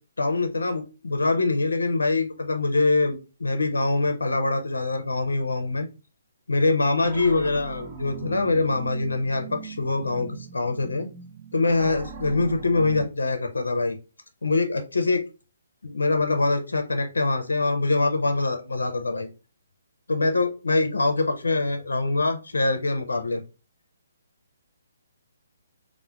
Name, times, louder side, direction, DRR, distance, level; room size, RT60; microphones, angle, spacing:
voice 1, 0.2-5.9 6.5-11.1 11.5-14.0 14.4-15.2 15.8-19.3 20.1-23.4, left 3 dB, 80° left, 6 dB, 0.5 m, -24 dB
sound 1, 7.0-13.1, right 7 dB, 30° right, 0.5 m, -39 dB
4.2 x 2.1 x 2.2 m, 0.31 s
figure-of-eight pair, 140°, 0 cm